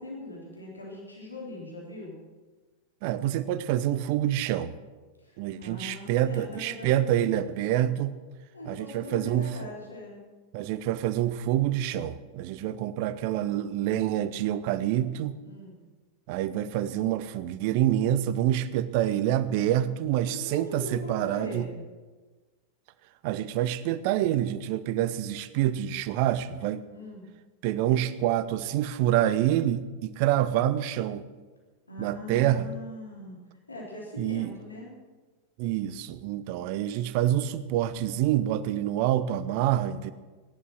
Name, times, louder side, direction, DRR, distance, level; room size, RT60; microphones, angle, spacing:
voice 1, 0.0-2.2 5.2-7.0 8.5-10.2 15.4-15.8 20.3-21.8 26.9-27.2 31.9-33.4 33.7-34.9, left 1 dB, 80° left, -3 dB, 3.8 m, -41 dB
voice 2, 3.0-4.7 5.4-8.1 8.7-9.5 10.5-15.4 16.3-21.7 23.2-26.8 27.6-31.3 32.0-32.7 34.2-34.5 35.6-40.1, right 12 dB, 45° right, 14 dB, 0.8 m, -27 dB
16.5 x 11.0 x 6.3 m, 1.3 s
figure-of-eight pair, 90°, 0 cm